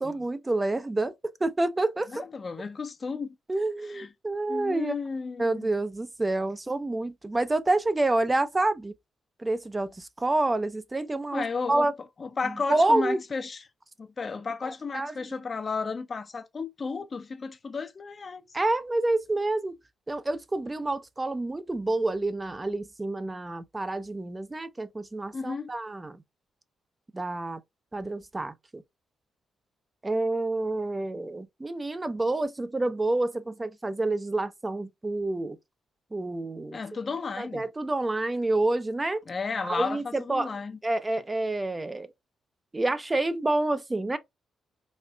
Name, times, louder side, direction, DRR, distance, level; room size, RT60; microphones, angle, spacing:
voice 1, 0.0-2.3 3.5-5.0 5.4-8.9 9.4-11.9 12.7-13.2 14.9-15.1 18.5-19.8 20.1-26.2 27.1-27.6 27.9-28.8 30.0-35.6 36.1-36.8 37.4-39.2 39.6-40.5 40.8-42.1 42.7-44.2, right 2 dB, 25° right, 0.4 m, -28 dB
voice 2, 2.1-3.3 3.8-4.1 4.5-5.7 11.3-11.9 12.2-13.6 14.0-18.4 25.3-25.7 36.7-37.6 39.3-40.8, left 4 dB, 45° left, 0.5 m, -33 dB
4.2 x 2.4 x 2.2 m
supercardioid pair, 50°, 0 cm